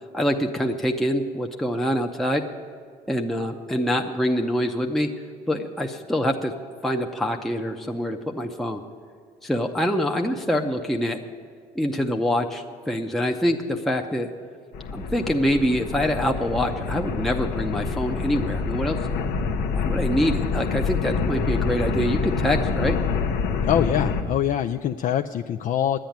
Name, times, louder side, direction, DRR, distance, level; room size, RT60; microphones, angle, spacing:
voice 1, 0.1-2.4 3.1-5.1 5.5-6.5 6.8-8.8 9.4-11.2 11.7-14.3 14.9-19.0 19.7-23.0, equal, ahead, 2 dB, 0.6 m, -25 dB
sound 1, 14.7-24.2, left 5 dB, 85° left, 0.9 m, -26 dB
voice 2, 23.6-26.0, left 10 dB, 50° left, 6 dB, 0.4 m, -24 dB
10.5 x 8.8 x 9.3 m, 2.1 s
cardioid pair, 110°, 17 cm